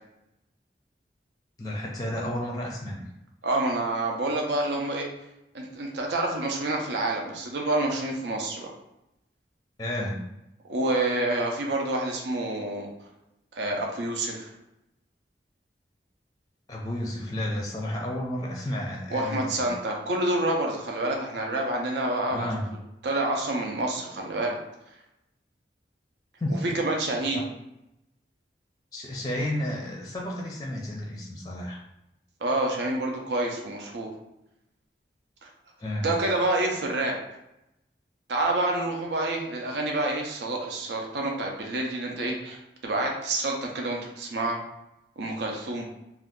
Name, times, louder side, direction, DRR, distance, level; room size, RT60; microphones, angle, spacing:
voice 1, 1.6-3.0 9.8-10.2 16.7-19.7 22.3-22.7 26.4-26.6 27.3-27.4 28.9-31.8 35.8-36.1, left 1 dB, 20° left, -1 dB, 0.4 m, -31 dB
voice 2, 3.4-5.1 5.5-8.7 10.7-12.9 13.5-14.5 19.1-22.5 23.0-24.6 26.6-27.4 32.4-34.1 35.4-35.5 36.0-37.1 38.3-44.6 45.2-45.9, right 2 dB, 80° right, 0 dB, 0.5 m, -28 dB
2.6 x 2.3 x 3.6 m, 0.88 s
head